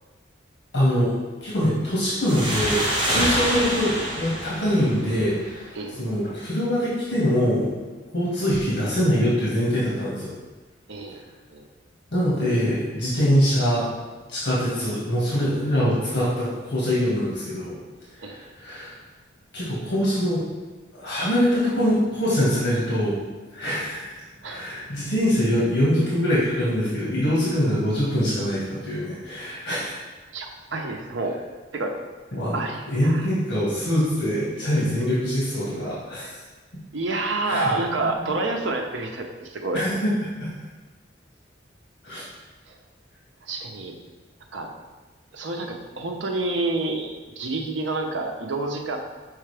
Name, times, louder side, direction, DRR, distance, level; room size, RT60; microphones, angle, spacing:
voice 1, 0.7-1.1 1.4-7.7 8.1-10.3 12.1-13.9 14.3-17.7 18.1-18.9 19.5-20.4 21.0-23.2 23.5-24.2 24.4-30.0 32.3-36.4 37.4-37.7 38.0-38.4 39.7-40.1 40.4-40.5 42.0-42.2, equal, 65° left, -7 dB, 1.7 m, -24 dB
sound 1, 2.3-5.7, equal, 25° right, 1.6 m, -26 dB
voice 2, 10.9-11.2 11.5-11.6 18.2-18.4 24.4-24.6 30.3-30.5 30.7-31.4 31.7-31.9 32.5-33.3 36.9-39.8 42.7-42.8 43.4-43.9 44.5-44.7 45.3-49.0, right 2 dB, 75° right, 2 dB, 0.8 m, -28 dB
6.5 x 4.7 x 3.4 m, 1.3 s
head